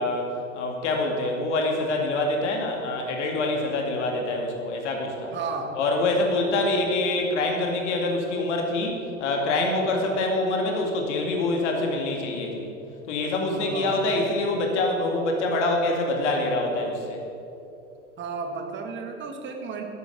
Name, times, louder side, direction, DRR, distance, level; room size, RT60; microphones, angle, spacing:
voice 1, 0.0-5.4 5.7-12.7 13.1-17.2, left 2 dB, 55° left, 2 dB, 2.2 m, -25 dB
voice 2, 5.3-5.7 6.3-6.7 13.6-14.0 18.2-19.8, right 4 dB, 25° right, 4 dB, 1.8 m, -33 dB
12.5 x 8.5 x 7.1 m, 2.7 s
figure-of-eight pair, 85°, 41 cm